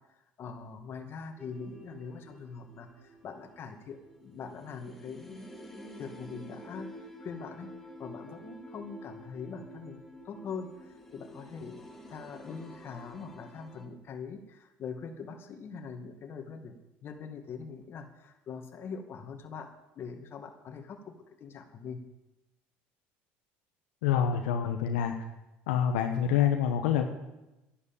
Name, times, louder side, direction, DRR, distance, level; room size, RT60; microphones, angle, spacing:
voice 1, 0.4-5.4 6.0-7.7 8.0-11.8 12.1-16.7 17.0-22.0, left 5 dB, 45° left, 5 dB, 2.2 m, -43 dB
sound 1, 1.4-13.9, equal, 5° left, 2.5 m, -49 dB
voice 2, 24.0-25.1 25.7-27.1, left 8 dB, 90° left, 4 dB, 1.2 m, -26 dB
11.5 x 11.0 x 7.4 m, 0.97 s
supercardioid pair, 90°, 5 cm